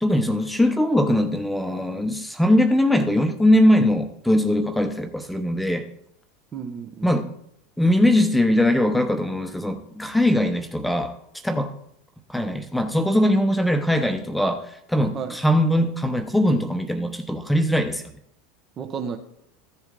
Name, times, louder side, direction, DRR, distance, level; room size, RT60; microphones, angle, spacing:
voice 1, 0.0-5.9 7.0-7.3 7.8-11.2 11.4-11.7 12.3-18.0, left 1 dB, 5° left, 0.9 m, -21 dB
voice 2, 6.5-7.3 15.1-15.4 18.8-19.2, right 6 dB, 35° right, 1.1 m, -32 dB
14.5 x 7.0 x 3.9 m
hypercardioid pair, 85°, 0 cm